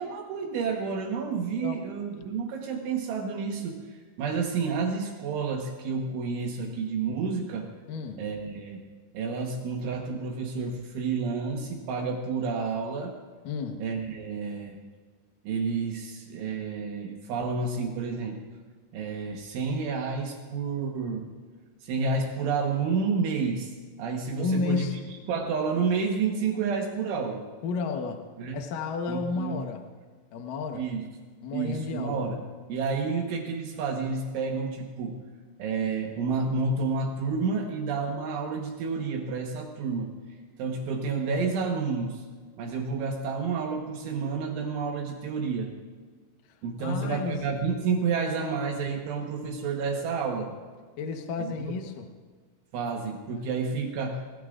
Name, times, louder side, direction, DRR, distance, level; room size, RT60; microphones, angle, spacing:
voice 1, 0.0-7.7 8.2-8.8 9.2-13.1 13.8-14.8 15.5-18.4 18.9-21.3 21.8-27.5 28.4-28.6 29.1-29.6 30.8-31.1 31.5-32.4 32.7-35.3 35.6-40.2 40.6-42.2 42.6-45.8 46.6-50.6 51.4-51.7 52.7-54.3, right 5 dB, 75° right, 1 dB, 3.6 m, -30 dB
voice 2, 7.9-8.2 13.4-13.8 24.4-25.2 27.6-28.2 28.5-29.9 30.3-30.9 31.4-32.3 46.8-47.4 51.0-52.1, left 5 dB, 80° left, 4 dB, 1.9 m, -32 dB
27.0 x 21.0 x 2.5 m, 1.5 s
omnidirectional pair, 5.7 m